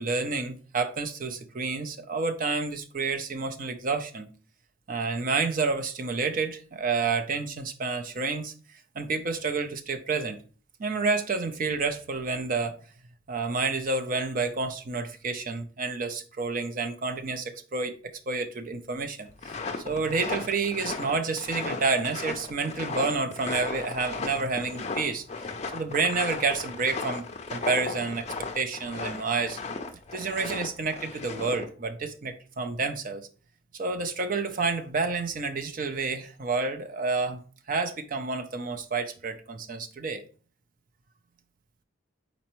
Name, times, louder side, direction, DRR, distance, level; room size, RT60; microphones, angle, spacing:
voice 1, 0.0-4.3 4.9-8.5 9.0-10.4 10.8-12.8 13.3-17.9 18.3-25.2 25.7-27.2 27.5-28.3 28.5-29.6 30.1-33.2 33.7-37.4 37.7-40.2, right 4 dB, 45° right, 0.5 m, -29 dB
sound 1, 19.3-31.7, left 3 dB, 35° left, 0.4 m, -36 dB
4.3 x 4.0 x 3.0 m
head